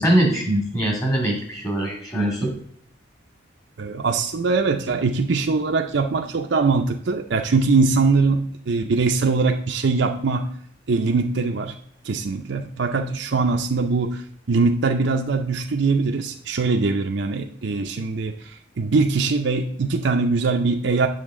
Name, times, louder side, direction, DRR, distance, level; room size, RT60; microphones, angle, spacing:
voice 1, 0.0-2.5, right 1 dB, 20° left, 0 dB, 2.2 m, -22 dB
voice 2, 3.8-10.5 10.9-11.7 12.0-14.2 14.5-21.1, right 4 dB, 65° right, 3 dB, 0.5 m, -22 dB
8.1 x 6.4 x 3.7 m, 0.63 s
head